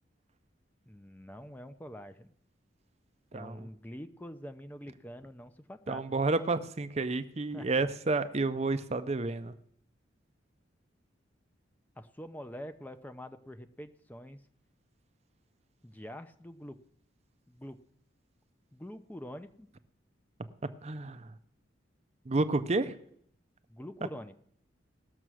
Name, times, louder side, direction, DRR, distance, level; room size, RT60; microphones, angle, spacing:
voice 1, 0.9-2.3 3.3-6.1 7.5-7.8 12.0-14.4 15.8-16.8 17.5-17.8 18.7-19.7 23.7-24.4, equal, 10° left, 9 dB, 0.6 m, -45 dB
voice 2, 3.3-3.7 5.9-9.5 20.6-21.3 22.3-23.0, right 3 dB, 35° right, 11 dB, 0.6 m, -30 dB
18.0 x 6.8 x 6.2 m, 0.68 s
head